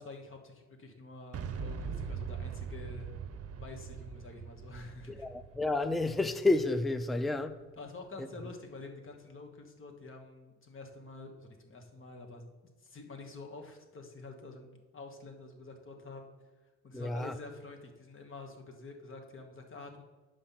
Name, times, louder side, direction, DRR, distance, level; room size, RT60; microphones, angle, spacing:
voice 1, 0.0-3.2 3.6-5.3 7.8-16.3 16.8-20.0, left 3 dB, 45° left, 1.3 m, -48 dB
Boom, 1.3-7.2, right 6 dB, 50° right, 0.7 m, -42 dB
voice 2, 5.1-7.6 8.2-8.3 16.9-17.4, left 2 dB, ahead, 0.4 m, -30 dB
6.8 x 5.2 x 5.7 m
cardioid pair, 90°, 30 cm